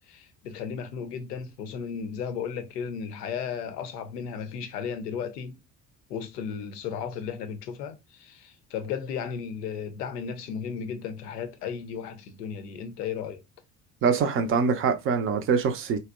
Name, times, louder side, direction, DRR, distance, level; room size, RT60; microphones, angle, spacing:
voice 1, 0.1-5.6 6.1-13.4, left 7 dB, 75° left, 0.6 m, -35 dB
voice 2, 14.0-16.0, right 5 dB, 30° right, 0.4 m, -24 dB
2.7 x 2.0 x 2.2 m
figure-of-eight pair, 55°, 49 cm